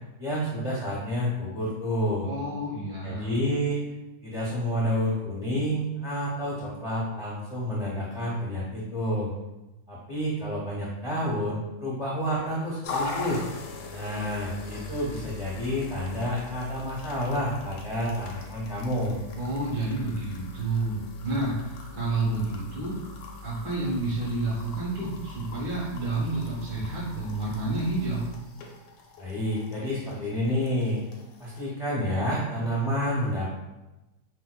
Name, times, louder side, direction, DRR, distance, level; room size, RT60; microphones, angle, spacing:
voice 1, 0.2-2.3 3.0-3.8 4.2-9.3 9.9-13.4 13.9-19.2 29.2-31.0 31.4-33.5, equal, 55° left, -6 dB, 0.4 m, -29 dB
voice 2, 2.2-3.3 19.4-23.0 23.4-28.3, right 2 dB, 80° right, -7 dB, 1.6 m, -30 dB
sound 1, 12.8-31.6, left 3 dB, 85° left, 1.2 m, -41 dB
4.9 x 2.1 x 2.3 m, 1.0 s
omnidirectional pair, 1.9 m